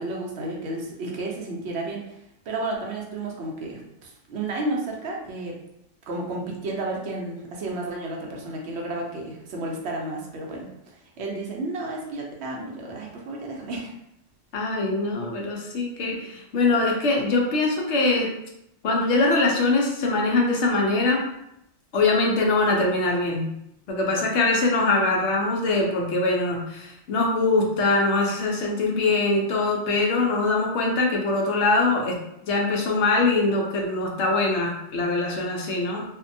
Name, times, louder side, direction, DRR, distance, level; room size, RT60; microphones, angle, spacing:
voice 1, 0.0-2.1 2.5-5.6 6.1-10.7 11.2-13.9 16.1-16.2, right 2 dB, 60° right, -1 dB, 0.8 m, -32 dB
voice 2, 14.5-18.3 18.8-21.2 21.9-23.5 23.9-32.2 32.4-36.0, left 3 dB, 65° left, 0 dB, 0.8 m, -23 dB
2.6 x 2.1 x 2.5 m, 0.80 s
omnidirectional pair, 1.4 m